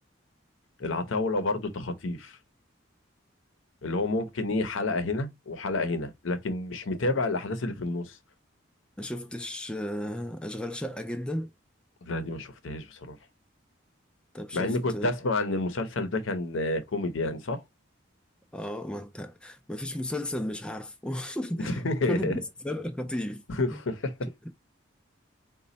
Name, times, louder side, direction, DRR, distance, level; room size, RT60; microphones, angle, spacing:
voice 1, 0.8-2.4 3.8-8.2 12.0-13.2 14.5-17.6 21.6-22.4 23.5-24.1, left 2 dB, 80° left, 0.7 m, -29 dB
voice 2, 9.0-11.5 14.3-15.1 18.5-22.3 22.6-23.4 23.7-23.8, left 1 dB, 5° left, 0.3 m, -34 dB
4.1 x 2.2 x 3.9 m
head